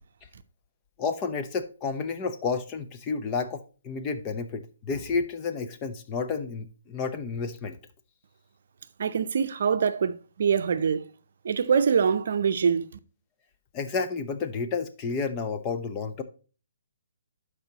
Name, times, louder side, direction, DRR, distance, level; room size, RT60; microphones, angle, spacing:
voice 1, 1.0-7.8 13.7-16.2, left 4 dB, 25° left, 0.8 m, -31 dB
voice 2, 9.0-11.1 11.4-12.9, right 6 dB, 60° right, 0.6 m, -24 dB
12.0 x 4.9 x 2.9 m
hypercardioid pair, 150°, 0 cm